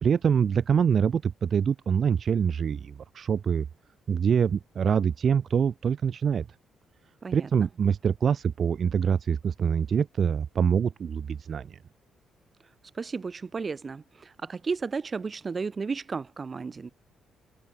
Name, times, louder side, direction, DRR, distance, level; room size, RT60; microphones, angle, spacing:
voice 1, 0.0-3.7 4.1-6.5 7.3-11.8, right 7 dB, 50° right, 3.2 m, -25 dB
voice 2, 7.2-7.7 13.0-16.9, right 4 dB, 35° right, 5.2 m, -33 dB
cardioid pair, 90°, 0 cm